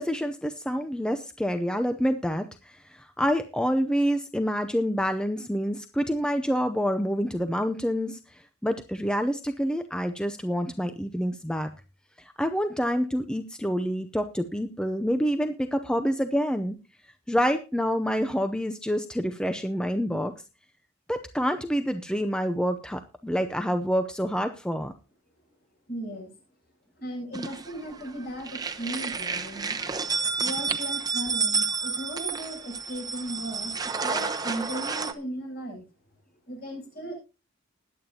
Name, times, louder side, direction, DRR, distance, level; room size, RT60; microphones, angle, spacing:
voice 1, 0.0-11.7 12.2-16.8 17.3-20.3 21.1-24.9, equal, 5° left, 8 dB, 0.6 m, -27 dB
voice 2, 25.9-26.3 27.0-29.8 30.4-35.8 36.5-37.1, right 1 dB, 50° left, 0 dB, 7.8 m, -36 dB
sound 1, 27.3-28.1 28.4-35.1, right 5 dB, 20° right, 0.9 m, -30 dB
20.5 x 8.8 x 2.8 m, 0.30 s
head